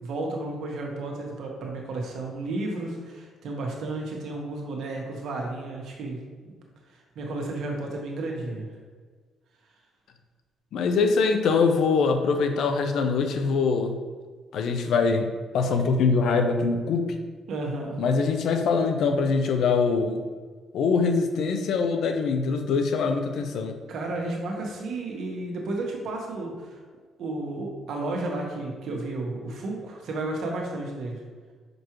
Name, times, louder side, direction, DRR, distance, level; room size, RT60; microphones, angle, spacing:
voice 1, 0.0-6.5 7.1-8.7 17.5-18.0 23.9-26.8 27.2-31.2, right 2 dB, 75° right, 0 dB, 1.3 m, -32 dB
voice 2, 10.7-13.9 14.5-15.3 15.5-17.1 18.0-20.2 20.7-23.8, left 4 dB, 75° left, 6 dB, 0.6 m, -23 dB
5.9 x 5.2 x 3.1 m, 1.5 s
cardioid pair, 90°, 0 cm